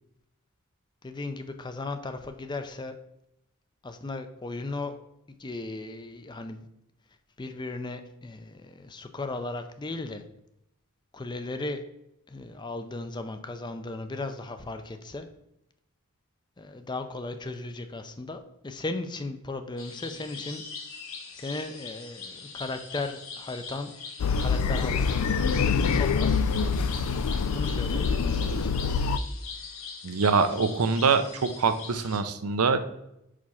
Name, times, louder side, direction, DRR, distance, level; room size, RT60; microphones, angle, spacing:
voice 1, 1.0-2.9 3.8-4.9 5.4-6.7 7.4-10.2 11.1-11.8 12.3-15.3 16.6-20.6 21.3-23.9 24.4-26.4 27.5-28.8, left 2 dB, 20° left, 8 dB, 0.4 m, -36 dB
sound 1, 19.8-32.2, left 5 dB, 65° left, 1.2 m, -42 dB
sound 2, 24.2-29.2, left 5 dB, 85° left, 0.4 m, -25 dB
voice 2, 30.0-32.8, right 5 dB, 80° right, 9 dB, 0.7 m, -24 dB
5.0 x 4.7 x 5.5 m, 0.82 s
head